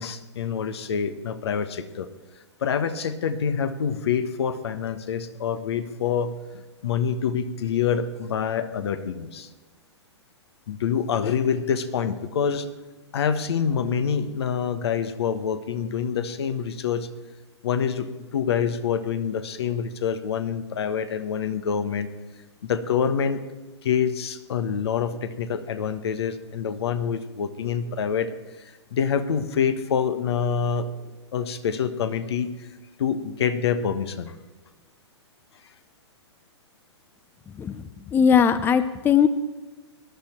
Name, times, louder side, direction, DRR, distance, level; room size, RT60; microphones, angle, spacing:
voice 1, 0.0-2.1 2.6-9.5 10.7-12.7 13.1-17.1 17.6-22.1 22.6-23.4 23.8-28.3 28.6-30.9 31.3-32.7 33.0-34.3, left 7 dB, 65° left, 11 dB, 1.3 m, -26 dB
voice 2, 38.1-39.3, left 7 dB, 15° left, 13 dB, 0.5 m, -19 dB
18.0 x 11.5 x 4.4 m, 1.2 s
hypercardioid pair, 115°, 15 cm